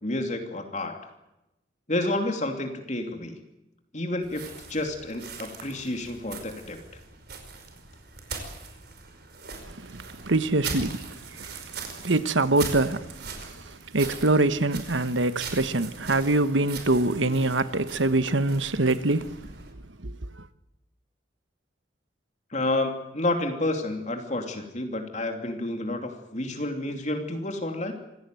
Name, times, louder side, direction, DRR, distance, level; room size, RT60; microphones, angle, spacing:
voice 1, 0.0-1.1 1.9-3.4 3.9-4.4 4.7-6.8 22.5-28.0, left 2 dB, 40° left, 2.9 m, -30 dB
sound 1, 4.2-19.7, right 5 dB, 55° right, 5.1 m, -41 dB
voice 2, 9.7-11.6 11.9-19.4 20.0-20.2, right 2 dB, 80° right, 1.3 m, -25 dB
26.5 x 17.0 x 9.3 m
head